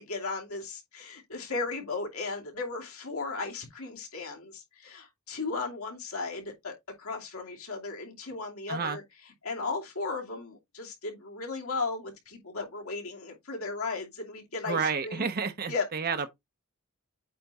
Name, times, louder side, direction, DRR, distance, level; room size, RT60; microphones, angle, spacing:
voice 1, 0.0-9.0 9.4-15.3 15.7-15.8, left 3 dB, 75° left, 2.6 m, -36 dB
voice 2, 14.7-16.3, right 5 dB, 45° right, 0.8 m, -30 dB
8.3 x 3.4 x 4.2 m
head